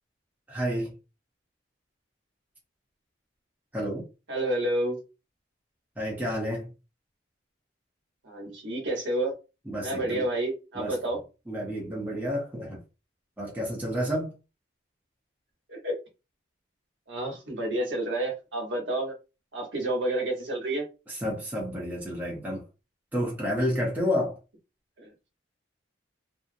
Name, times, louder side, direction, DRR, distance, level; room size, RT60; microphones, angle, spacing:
voice 1, 0.5-0.9 3.7-4.1 6.0-6.7 9.7-10.3 10.7-11.1 11.5-12.8 13.4-14.4 21.1-22.6 23.1-24.4, equal, 10° right, 0.7 m, -30 dB
voice 2, 4.3-5.0 8.2-9.4 9.8-11.2 15.7-15.9 17.1-19.1 19.5-20.9 25.0-25.1, right 1 dB, 70° right, 1.0 m, -29 dB
2.6 x 2.0 x 2.6 m
head